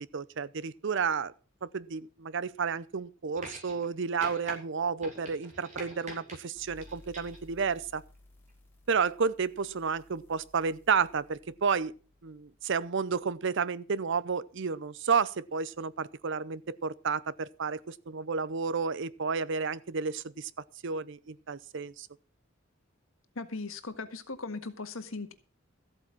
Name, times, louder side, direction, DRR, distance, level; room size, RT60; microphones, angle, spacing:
voice 1, 0.0-1.3 1.6-8.0 8.9-11.9 12.2-20.5 20.8-22.1, right 5 dB, 65° right, 0.6 m, -31 dB
sound 1, 3.4-3.9 4.2-4.6 5.0-6.4 6.8-7.4 8.5-8.6, right 1 dB, 35° right, 4.7 m, -44 dB
sound 2, 6.6-13.8, left 1 dB, 10° left, 3.5 m, -58 dB
voice 2, 23.3-25.3, left 3 dB, 80° left, 1.7 m, -38 dB
14.0 x 8.3 x 6.1 m
head